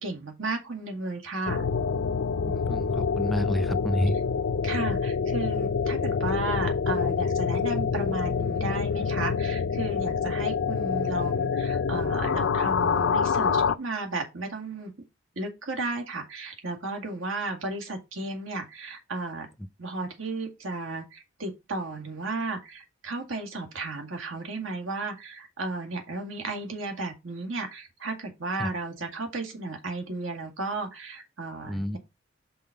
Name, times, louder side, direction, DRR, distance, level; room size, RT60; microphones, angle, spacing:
voice 1, 0.0-1.7 4.6-14.9 15.4-19.5 19.8-32.0, right 3 dB, 85° right, 2.1 m, -34 dB
sound 1, 1.5-13.8, left 6 dB, 65° left, 0.4 m, -26 dB
voice 2, 2.5-4.2 28.6-28.7 31.7-32.0, equal, ahead, 0.5 m, -29 dB
5.6 x 4.1 x 5.7 m
head